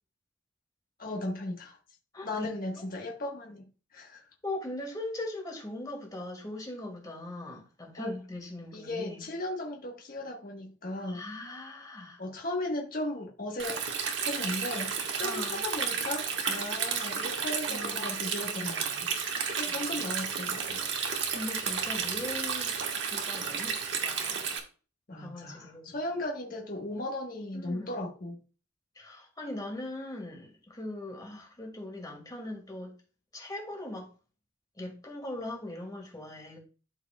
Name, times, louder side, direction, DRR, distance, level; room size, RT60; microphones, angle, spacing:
voice 1, 1.0-1.8 2.2-3.6 3.9-4.2 8.0-8.2 8.7-11.2 12.2-13.8 14.2-19.1 19.6-20.8 25.1-28.4, left 1 dB, 45° left, 1.3 m, -36 dB
voice 2, 2.1-2.5 2.8-2.9 4.4-9.3 11.1-12.2 15.2-15.6 17.7-18.3 19.7-20.2 20.9-22.7 23.0-24.5 25.1-26.0 27.5-27.9 29.0-32.9 33.3-34.1 34.8-36.6, left 1 dB, 20° left, 2.3 m, -40 dB
Stream, 13.6-24.6, right 6 dB, 65° right, 1.5 m, -32 dB
12.5 x 4.7 x 2.3 m
head